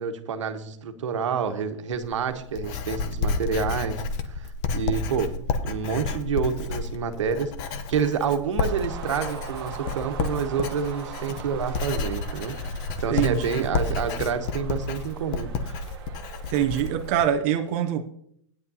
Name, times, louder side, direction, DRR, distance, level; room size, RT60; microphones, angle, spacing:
voice 1, 0.0-12.6 13.0-15.8, right 6 dB, 80° right, 8 dB, 1.2 m, -28 dB
Writing, 1.9-17.3, left 3 dB, 25° left, 0.6 m, -31 dB
sound 1, 8.6-17.2, right 8 dB, 50° right, 1.1 m, -42 dB
voice 2, 13.1-13.6 16.5-18.0, right 10 dB, 30° right, 5 dB, 0.5 m, -24 dB
15.0 x 9.6 x 2.8 m, 0.70 s
supercardioid pair, 170°, 16 cm